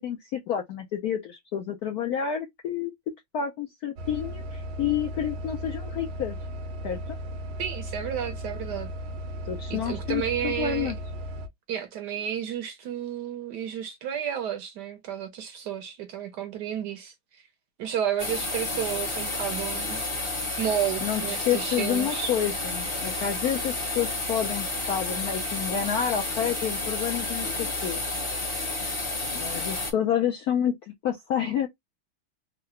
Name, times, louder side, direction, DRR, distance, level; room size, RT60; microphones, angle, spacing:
voice 1, 0.0-2.9 3.3-6.4 6.8-7.2 9.5-11.0 21.0-28.0 29.3-31.7, left 9 dB, 75° left, 0.8 m, -29 dB
sound 1, 4.0-11.5, equal, 85° right, 1.5 m, -36 dB
voice 2, 7.6-8.9 9.7-10.9 11.7-17.4 17.8-20.1 20.6-22.3, right 9 dB, 65° right, 1.1 m, -32 dB
sound 2, 18.2-29.9, left 2 dB, 25° left, 0.7 m, -31 dB
3.8 x 2.1 x 3.1 m
omnidirectional pair, 2.2 m